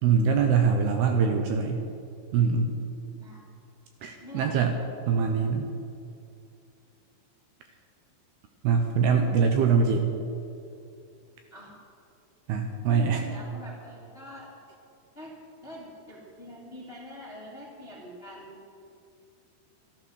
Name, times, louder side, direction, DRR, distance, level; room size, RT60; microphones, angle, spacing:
voice 1, 0.0-1.8 2.3-2.8 4.0-4.7 5.1-5.7 8.6-10.1 12.5-13.2, right 6 dB, 75° right, 4 dB, 2.5 m, -23 dB
voice 2, 3.1-3.4 4.2-4.5 5.3-5.5 11.5-11.7 12.9-14.5 15.1-15.4 15.6-18.7, left 1 dB, 30° left, -4 dB, 1.1 m, -44 dB
13.5 x 12.5 x 6.4 m, 2.6 s
omnidirectional pair, 5.3 m